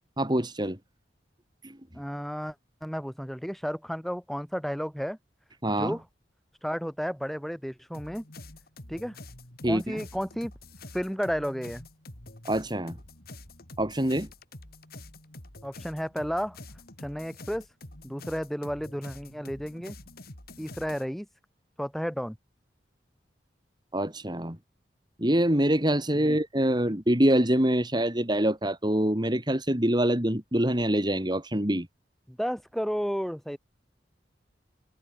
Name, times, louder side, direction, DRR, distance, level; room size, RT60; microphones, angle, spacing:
voice 1, 0.2-0.8 1.6-1.8 5.6-5.9 9.6-10.0 12.4-13.0 13.8-14.3 23.9-24.6 25.2-31.9, right 1 dB, 25° right, 3.2 m, -25 dB
voice 2, 1.9-2.5 2.8-5.2 5.8-6.0 6.6-8.2 8.9-9.2 9.7-10.5 10.9-11.9 15.6-16.6 17.0-17.7 18.0-20.0 20.6-21.3 21.8-22.4 26.1-26.4 32.3-33.6, equal, ahead, 4.3 m, -32 dB
sound 1, 7.9-21.0, left 2 dB, 60° left, 5.0 m, -47 dB
head